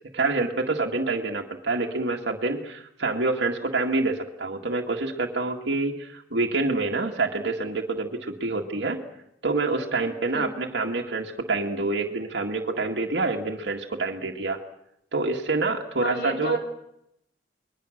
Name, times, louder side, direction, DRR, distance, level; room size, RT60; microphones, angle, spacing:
voice 1, 0.1-9.0 9.4-14.6 15.1-16.6, right 3 dB, 70° right, 1 dB, 2.0 m, -27 dB
voice 2, 16.0-16.6, equal, 65° left, 2 dB, 4.6 m, -32 dB
29.0 x 22.0 x 6.5 m, 0.79 s
head